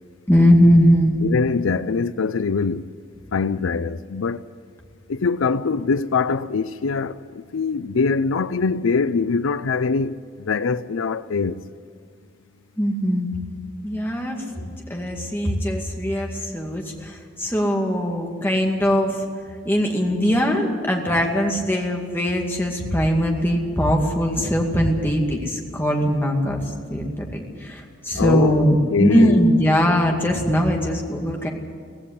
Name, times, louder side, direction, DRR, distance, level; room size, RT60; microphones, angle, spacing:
voice 1, 0.3-1.2 12.8-13.3 13.8-14.4 14.6-19.2 19.7-26.6 26.9-31.5, equal, 10° left, 2.2 m, -20 dB
voice 2, 1.2-2.9 3.3-4.4 5.1-11.7 14.6-14.7 28.1-28.6 28.9-29.5, left 4 dB, 90° left, 0.5 m, -23 dB
16.5 x 16.0 x 9.8 m
head